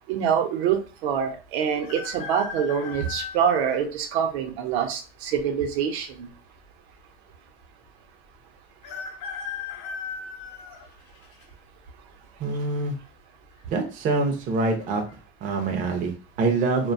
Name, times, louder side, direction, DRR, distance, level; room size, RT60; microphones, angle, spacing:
voice 1, 0.1-6.3, right 8 dB, 80° right, 6 dB, 0.6 m, -25 dB
sound 1, 1.8-3.8 4.5-4.6 5.7-6.3 6.6-6.7 6.9-7.0 8.8-11.4 12.0-12.4 13.5-13.9 14.1-14.2 14.7-15.1 15.6-15.8, left 6 dB, 45° left, 0.6 m, -37 dB
voice 2, 12.4-12.9 13.7-15.0 15.4-16.9, right 3 dB, 25° right, 2 dB, 0.3 m, -25 dB
2.3 x 2.2 x 2.5 m, 0.35 s
supercardioid pair, 155°, 32 cm